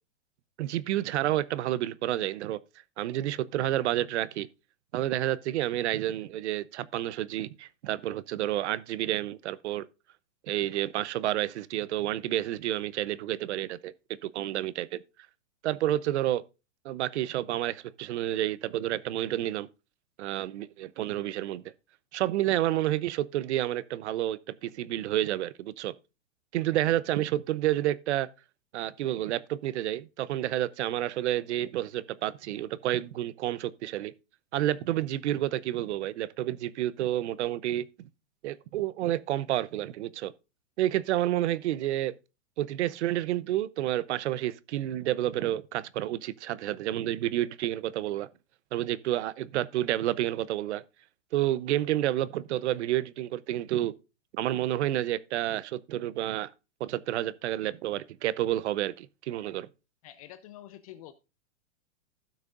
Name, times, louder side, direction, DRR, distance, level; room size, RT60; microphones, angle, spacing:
voice 1, 0.6-2.6 3.0-4.5 4.9-9.9 10.5-13.9 14.2-15.0 15.6-16.4 16.8-19.7 20.2-21.6 22.1-25.9 26.5-28.3 28.7-34.1 34.5-37.8 38.4-40.3 40.8-42.2 42.6-48.3 48.7-50.8 51.3-53.9 54.3-56.5 56.8-59.7, right 13 dB, 60° right, 0.7 m, -30 dB
voice 2, 60.0-61.1, left 13 dB, 30° left, 0.5 m, -47 dB
16.0 x 6.4 x 2.4 m
hypercardioid pair, 145°, 39 cm